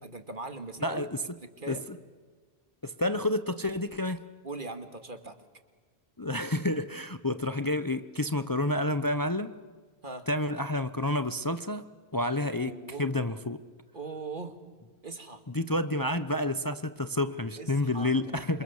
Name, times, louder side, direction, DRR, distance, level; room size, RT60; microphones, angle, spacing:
voice 1, 0.0-1.1 1.6-1.8 4.4-5.4 10.0-10.3 12.5-13.1 13.9-14.6 15.0-15.4 17.6-18.6, right 3 dB, 50° right, 8 dB, 2.4 m, -40 dB
voice 2, 0.8-1.2 1.7-1.8 2.8-4.2 6.2-9.5 10.3-11.8 12.1-13.6 15.5-18.6, left 1 dB, 20° left, 11 dB, 0.8 m, -29 dB
28.5 x 27.5 x 7.2 m, 1.5 s
omnidirectional pair, 1.1 m